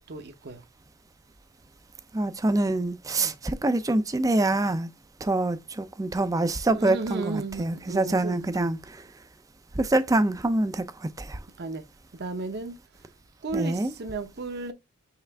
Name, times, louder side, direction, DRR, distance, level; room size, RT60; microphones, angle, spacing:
voice 1, 0.1-0.6 3.2-3.3 6.7-8.7 11.6-11.8 12.1-12.8 13.4-14.7, right 3 dB, 50° right, 0.7 m, -34 dB
voice 2, 2.1-4.9 5.2-9.0 9.8-11.4 13.5-13.9, right 2 dB, 15° right, 0.4 m, -25 dB
5.6 x 2.5 x 3.4 m
head